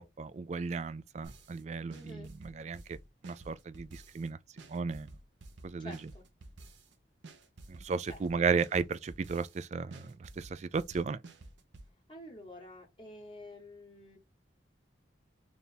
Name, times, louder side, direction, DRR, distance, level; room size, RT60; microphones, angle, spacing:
voice 1, 0.0-2.8 3.2-4.4 4.7-5.1 5.6-6.0 7.7-11.2, right 5 dB, 35° right, 0.3 m, -34 dB
sound 1, 1.2-1.6 1.9-4.3 4.6-6.9 7.2-9.6 9.9-11.9, right 2 dB, 80° right, 0.7 m, -51 dB
voice 2, 1.9-2.3 5.8-6.2 8.0-8.5 12.1-14.2, left 1 dB, 25° left, 1.5 m, -49 dB
3.5 x 2.5 x 4.2 m
head